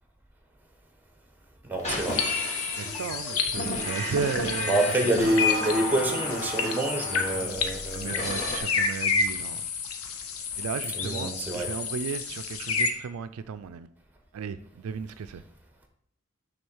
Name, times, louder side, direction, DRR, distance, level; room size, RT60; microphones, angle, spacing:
voice 1, 1.6-2.2 4.7-8.3 10.9-11.7, right 1 dB, 10° right, 1.0 m, -27 dB
sound 1, 1.8-8.6, left 1 dB, 30° left, 1.8 m, -33 dB
sound 2, 1.9-12.9, left 5 dB, 85° left, 0.8 m, -30 dB
voice 2, 2.8-4.8 5.2-5.3 7.9-9.6 10.6-13.9 14.3-15.4, right 6 dB, 80° right, 0.4 m, -34 dB
6.4 x 3.8 x 6.2 m
head